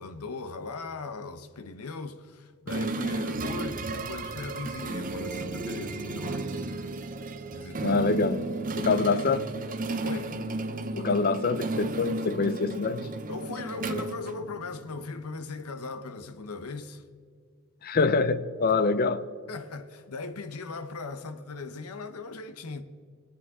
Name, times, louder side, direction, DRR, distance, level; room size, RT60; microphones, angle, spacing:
voice 1, 0.0-6.5 7.5-8.1 8.8-9.3 10.0-10.4 13.3-17.0 19.5-22.8, left 3 dB, 85° left, 0.9 m, -39 dB
sound 1, 2.7-14.9, right 2 dB, 40° right, 0.7 m, -33 dB
voice 2, 7.8-8.4 8.8-9.4 11.0-13.1 17.8-19.2, left 4 dB, 45° left, 0.6 m, -25 dB
24.0 x 8.6 x 3.7 m
head